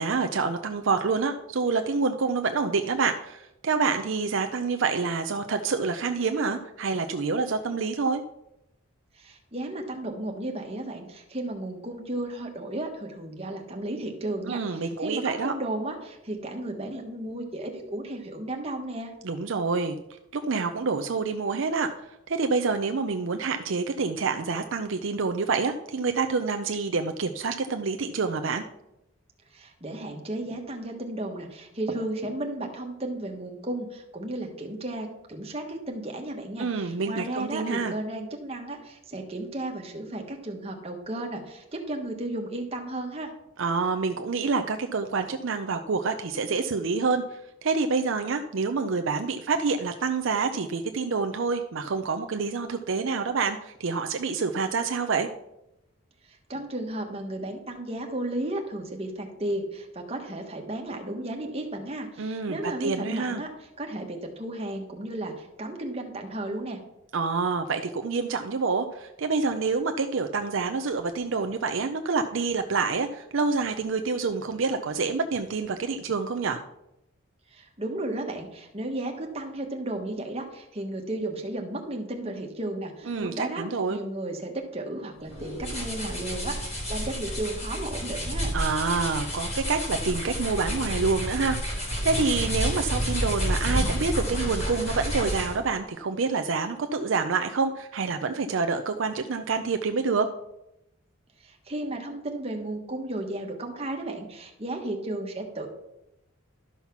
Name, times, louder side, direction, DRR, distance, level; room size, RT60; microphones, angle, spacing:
voice 1, 0.0-8.2 14.5-15.5 19.2-20.0 20.3-28.6 36.6-37.9 43.6-55.3 62.2-63.4 67.1-76.6 83.1-84.0 88.5-100.3, right 4 dB, 60° right, 6 dB, 0.5 m, -27 dB
voice 2, 9.1-19.1 29.5-43.3 56.3-66.8 77.5-83.6 83.9-88.5 101.4-105.7, right 1 dB, 25° right, 2 dB, 1.4 m, -34 dB
sound 1, 85.2-95.7, equal, 30° left, 3.8 m, -30 dB
12.0 x 5.7 x 5.9 m, 0.88 s
head